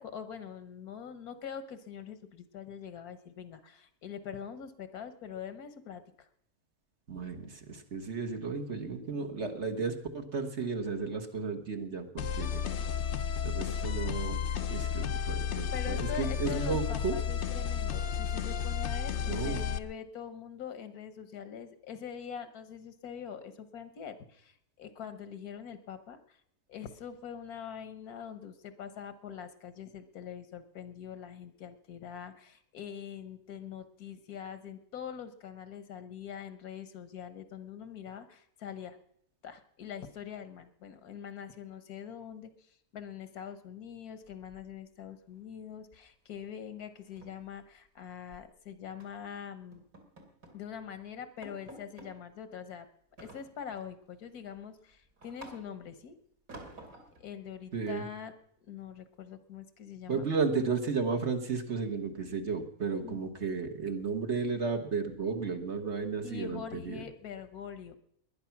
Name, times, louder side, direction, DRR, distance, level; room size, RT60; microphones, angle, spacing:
voice 1, 0.0-6.3 15.7-26.4 26.7-39.0 39.4-49.8 50.5-52.9 53.2-56.2 57.2-58.3 58.6-60.2 63.0-63.2 66.2-68.0, left 8 dB, 80° left, 11 dB, 1.6 m, -44 dB
voice 2, 7.1-12.6 13.4-14.4 14.7-17.1 19.3-19.6 57.7-58.0 60.1-67.0, right 5 dB, 50° right, 6 dB, 1.6 m, -33 dB
sound 1, 12.2-19.8, left 7 dB, 55° left, 0.9 m, -32 dB
sound 2, 44.2-45.1 45.3-45.6 45.9-46.1 46.4-46.5 46.9-48.5 49.0-49.3 49.7-50.6 51.0-51.1 51.4-52.1 53.2-53.9 54.3-55.9 56.5-57.2, right 1 dB, 70° right, 3.1 m, -52 dB
20.0 x 10.5 x 5.9 m, 0.71 s
omnidirectional pair, 1.6 m